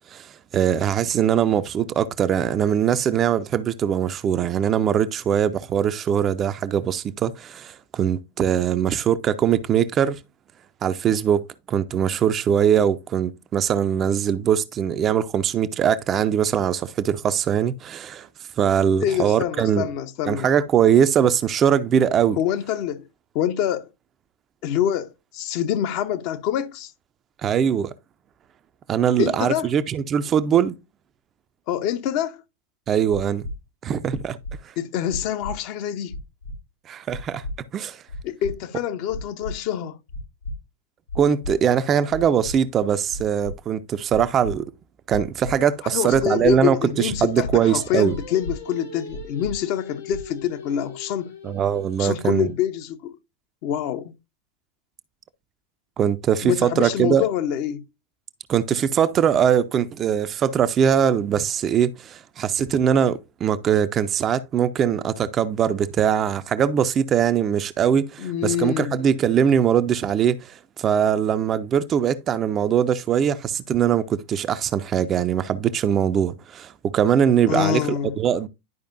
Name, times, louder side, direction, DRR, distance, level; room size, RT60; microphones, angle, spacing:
voice 1, 0.1-10.2 10.8-11.4 11.7-18.3 18.6-19.9 20.3-22.4 27.4-27.9 28.9-30.8 32.9-33.4 33.8-34.4 36.9-37.4 37.7-38.0 41.2-44.6 45.1-48.1 51.4-52.5 56.0-57.2 58.5-78.5, right 8 dB, 25° right, 0.5 m, -21 dB
voice 2, 19.0-20.5 22.4-23.1 23.3-23.9 24.6-26.9 29.2-29.7 31.7-32.4 34.8-36.2 38.2-39.9 45.9-51.3 52.0-53.2 53.6-54.1 56.4-57.8 68.2-69.0 77.5-78.2, left 10 dB, 45° left, 0.7 m, -26 dB
sound 1, 33.1-33.5 34.1-34.5 35.1-35.5 36.1-36.6 37.1-37.5 38.1-38.5 39.1-39.5 40.1-40.5 41.1-41.5 42.1-42.5 43.1-43.5 44.1-44.5 45.1-45.5 46.1-46.5 47.1-47.5 48.1-48.5 49.1-49.5 50.1-50.4, left 1 dB, 85° left, 2.9 m, -33 dB
Singing, 47.2-52.6, left 5 dB, 65° left, 3.5 m, -41 dB
11.0 x 5.0 x 2.5 m
figure-of-eight pair, 90°, 0 cm